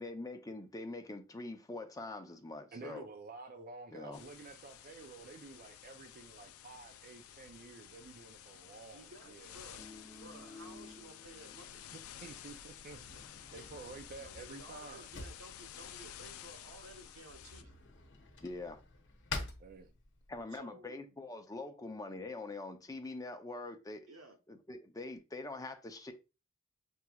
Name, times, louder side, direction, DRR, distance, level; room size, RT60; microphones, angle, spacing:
voice 1, 0.0-3.1 3.9-4.2 18.4-18.8 20.3-24.1 24.5-26.1, left 2 dB, 15° left, 0.5 m, -44 dB
voice 2, 2.7-9.6 11.9-15.1 19.6-19.9, right 3 dB, 45° right, 0.4 m, -51 dB
sound 1, 4.1-17.6, left 10 dB, 85° left, 0.4 m, -52 dB
voice 3, 8.9-9.9 10.1-11.8 14.2-17.8 20.5-21.3 24.1-24.4, right 2 dB, 85° right, 0.9 m, -55 dB
sound 2, 9.4-12.0 12.3-12.5, left 3 dB, ahead, 1.0 m, -54 dB
Drawer open or close, 11.7-20.4, left 3 dB, 60° left, 0.8 m, -49 dB
6.0 x 2.9 x 2.3 m
head